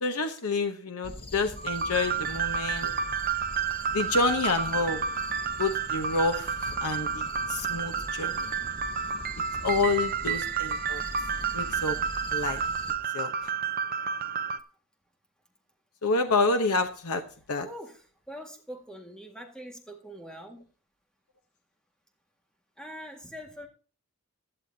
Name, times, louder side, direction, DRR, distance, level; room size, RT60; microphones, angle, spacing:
voice 1, 0.0-2.9 3.9-5.0 5.6-8.5 9.6-11.0 11.5-12.0 12.3-12.6 13.1-13.5 16.0-17.2 17.5-17.7, left 3 dB, 85° left, 1.0 m, -28 dB
sound 1, 1.0-13.0, left 1 dB, 25° left, 1.1 m, -43 dB
sound 2, 1.6-14.6, right 7 dB, 40° right, 0.7 m, -31 dB
voice 2, 17.6-20.6 22.8-23.7, equal, 5° left, 1.8 m, -43 dB
16.5 x 11.0 x 2.8 m
head